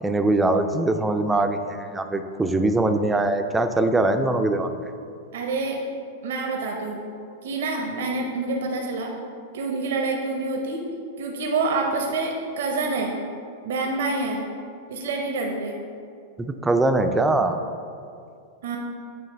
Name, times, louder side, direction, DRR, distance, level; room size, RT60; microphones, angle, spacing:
voice 1, 0.0-4.7 16.4-17.6, right 2 dB, 10° right, 7 dB, 0.3 m, -22 dB
voice 2, 5.3-5.8 6.2-7.0 7.4-9.1 9.5-10.8 11.2-13.1 13.6-14.4 14.9-15.7 18.6-18.8, right 3 dB, 75° right, 1 dB, 0.7 m, -27 dB
8.8 x 3.4 x 3.3 m, 2.4 s
hypercardioid pair, 125°, 0 cm